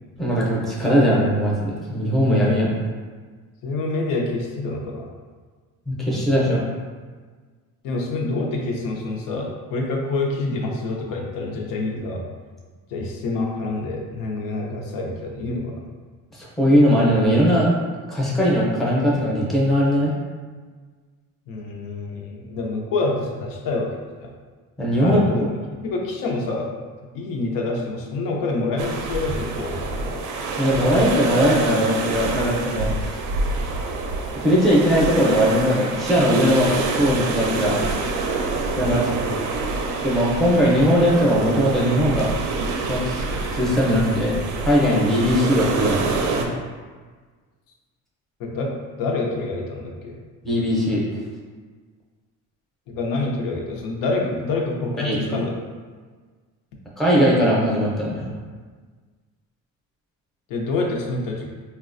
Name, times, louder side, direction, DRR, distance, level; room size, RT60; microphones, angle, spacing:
voice 1, 0.2-2.7 5.9-6.7 16.3-17.7 18.1-20.1 24.8-25.5 30.6-33.2 34.3-37.8 38.8-39.1 39.4-39.5 40.0-42.3 42.9-44.4 44.6-46.5 50.4-51.0 55.0-55.4 57.0-58.3, equal, ahead, -5 dB, 0.5 m, -20 dB
voice 2, 3.6-5.1 7.8-12.2 12.9-15.8 21.5-24.3 25.0-25.4 25.8-26.7 27.1-30.2 38.9-39.3 48.4-50.2 52.9-55.5 60.5-61.5, left 3 dB, 85° left, 0 dB, 0.6 m, -27 dB
sound 1, 28.8-46.5, right 3 dB, 65° right, 0.5 m, -27 dB
3.9 x 2.2 x 2.5 m, 1.5 s
cardioid pair, 150°, 32 cm